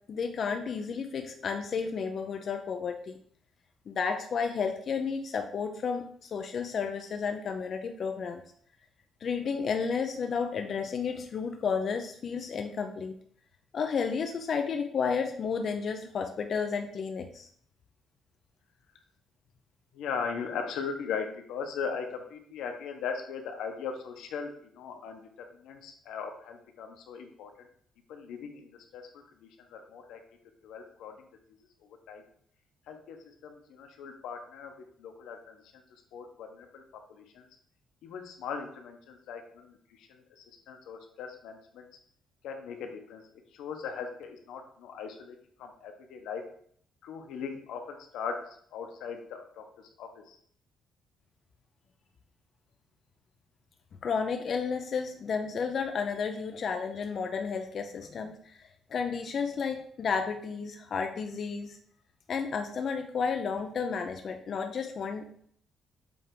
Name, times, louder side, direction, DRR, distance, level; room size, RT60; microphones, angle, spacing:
voice 1, 0.1-3.2 3.9-8.4 9.2-13.1 13.7-17.5 54.0-61.8 62.3-65.5, left 5 dB, 40° left, 5 dB, 0.5 m, -32 dB
voice 2, 19.9-25.2 25.5-27.5 28.1-30.2 30.6-31.2 31.5-31.6 32.1-32.2 32.9-34.7 35.0-35.8 36.1-36.8 37.1-37.5 38.0-41.9 42.4-43.2 43.5-46.4 47.0-48.4 48.7-49.7 50.0-50.4, left 6 dB, 85° left, 4 dB, 1.0 m, -39 dB
7.1 x 3.4 x 4.7 m, 0.62 s
cardioid pair, 175°, 0 cm